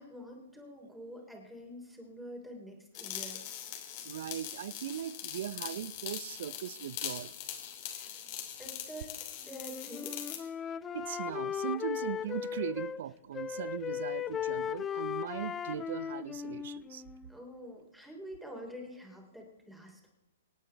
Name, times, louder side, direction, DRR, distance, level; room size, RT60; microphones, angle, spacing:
voice 1, 0.0-3.4 7.8-8.2 8.6-9.1 9.5-10.2 17.3-20.1, equal, ahead, 3.4 m, -47 dB
sound 1, 2.9-10.4, left 10 dB, 45° left, 2.7 m, -42 dB
voice 2, 4.0-7.3 10.9-17.0, right 10 dB, 60° right, 0.6 m, -39 dB
Wind instrument woodwind instrument, 9.5-13.0 13.3-17.4, left 8 dB, 20° left, 0.4 m, -37 dB
25.5 x 9.0 x 3.4 m
hypercardioid pair, 125°, 0 cm